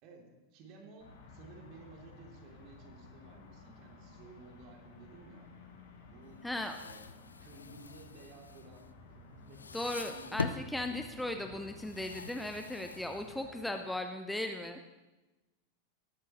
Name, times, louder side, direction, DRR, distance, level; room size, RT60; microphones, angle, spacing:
voice 1, 0.0-5.5 6.0-6.4 6.8-7.0 7.4-8.8 9.4-9.7 10.0-11.7 13.4-13.8, right 3 dB, 40° right, 0 dB, 3.0 m, -54 dB
sound 1, 1.0-13.5, left 3 dB, 60° left, 3.1 m, -55 dB
sound 2, 6.4-9.2 9.5-10.7 11.7-13.6, left 4 dB, 75° left, 0.5 m, -43 dB
voice 2, 6.4-6.8 9.7-14.8, left 1 dB, 5° left, 5 dB, 0.8 m, -37 dB
18.5 x 13.0 x 3.1 m, 1.1 s
figure-of-eight pair, 90°, 0 cm